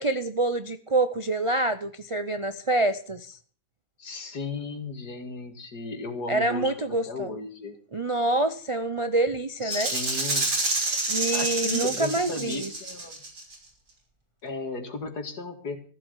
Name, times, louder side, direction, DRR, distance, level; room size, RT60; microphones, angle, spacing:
voice 1, 0.0-3.4 6.3-7.4 7.9-9.9 11.1-12.7, right 2 dB, 40° right, 9 dB, 0.4 m, -26 dB
voice 2, 4.0-6.7 7.1-7.7 9.6-10.6 10.9-11.0 11.3-13.2 14.4-15.8, left 4 dB, 75° left, 6 dB, 2.7 m, -35 dB
Rattle (instrument), 9.7-13.5, right 2 dB, 85° right, 4.1 m, -28 dB
15.0 x 7.5 x 8.2 m, 0.43 s
omnidirectional pair, 1.7 m